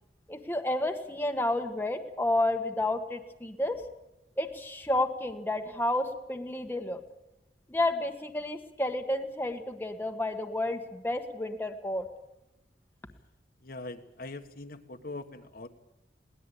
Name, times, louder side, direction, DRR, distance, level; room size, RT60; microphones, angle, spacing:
voice 1, 0.3-3.8 4.4-7.0 7.7-12.0, left 1 dB, 10° left, 4 dB, 1.4 m, -31 dB
voice 2, 13.6-15.7, left 2 dB, 55° left, 6 dB, 1.5 m, -42 dB
21.5 x 18.5 x 8.4 m, 0.91 s
head